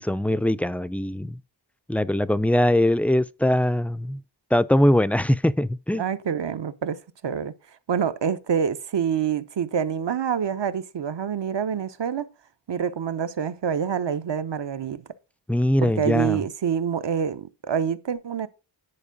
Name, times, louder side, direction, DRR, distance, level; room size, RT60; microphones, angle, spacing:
voice 1, 0.0-1.4 1.9-4.2 4.5-6.0 15.5-16.4, left 1 dB, 5° left, 0.4 m, -22 dB
voice 2, 6.0-7.5 7.9-12.3 12.7-15.0 15.8-18.5, right 7 dB, 65° right, 0.8 m, -26 dB
9.9 x 4.5 x 5.1 m
cardioid pair, 55°, 46 cm